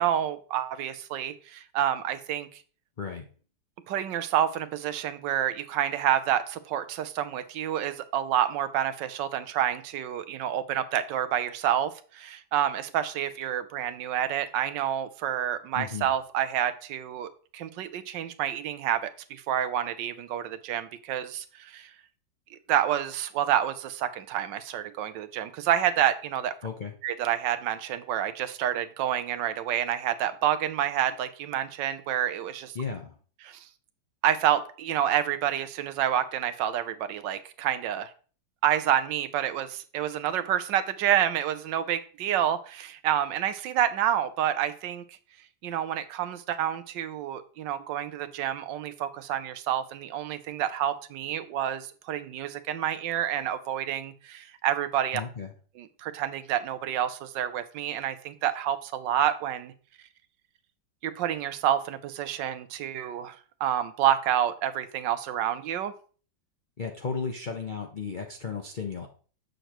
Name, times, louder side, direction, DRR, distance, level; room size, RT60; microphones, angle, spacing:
voice 1, 0.0-2.5 3.9-21.9 22.7-26.5 27.0-32.7 33.4-33.7 34.2-38.1 38.6-45.0 45.6-55.2 55.8-59.7 61.0-63.4 63.6-65.9, right 10 dB, 75° right, 11 dB, 1.3 m, -28 dB
voice 2, 15.7-16.1 26.6-26.9 32.7-33.1 55.1-55.5 66.8-69.1, left 5 dB, 85° left, 3 dB, 0.4 m, -34 dB
7.8 x 6.5 x 3.0 m, 0.41 s
omnidirectional pair, 2.1 m